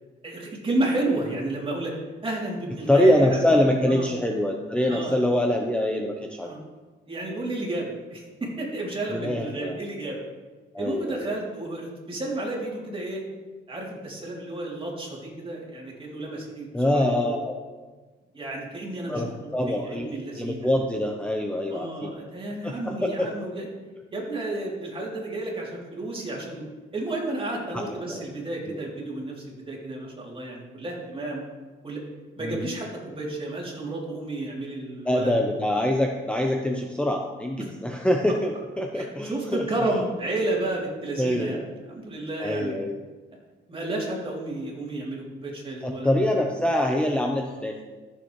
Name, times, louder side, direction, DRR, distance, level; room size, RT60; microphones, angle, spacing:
voice 1, 0.2-1.9 2.2-3.6 3.9-4.1 4.9-5.2 6.4-6.6 7.1-10.2 10.8-13.2 13.7-17.4 18.3-20.7 21.7-23.7 24.1-26.6 26.9-31.4 31.8-32.0 32.4-35.3 37.6-37.7 38.9-42.8 43.7-46.2, right 2 dB, 25° right, -3 dB, 3.1 m, -32 dB
voice 2, 2.9-6.5 9.1-9.8 10.7-11.3 16.7-17.5 19.1-22.1 22.6-23.3 27.7-28.2 28.7-28.8 32.4-32.6 35.0-39.6 41.2-41.7 42.4-43.0 45.8-47.8, left 1 dB, 5° left, 1 dB, 0.8 m, -24 dB
14.0 x 7.2 x 3.2 m, 1.4 s
cardioid pair, 90°, 20 cm